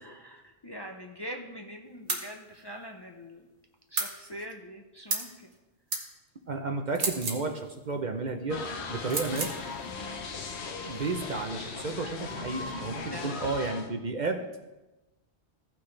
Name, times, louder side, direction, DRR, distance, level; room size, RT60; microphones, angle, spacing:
voice 1, 0.0-3.5 3.9-5.5 9.9-10.3 13.1-13.6, equal, 25° left, 2 dB, 0.6 m, -43 dB
sound 1, 2.1-2.3 4.0-4.1 5.1-5.3 5.9-6.1 6.9-7.4 9.1-9.6, right 3 dB, 85° right, 1.6 m, -31 dB
voice 2, 6.5-8.6 8.9-9.5 10.8-14.4, right 3 dB, 45° right, 4 dB, 0.8 m, -32 dB
sound 2, 8.5-13.9, left 4 dB, 70° left, 1.2 m, -38 dB
15.5 x 6.0 x 3.3 m, 1.0 s
omnidirectional pair, 1.2 m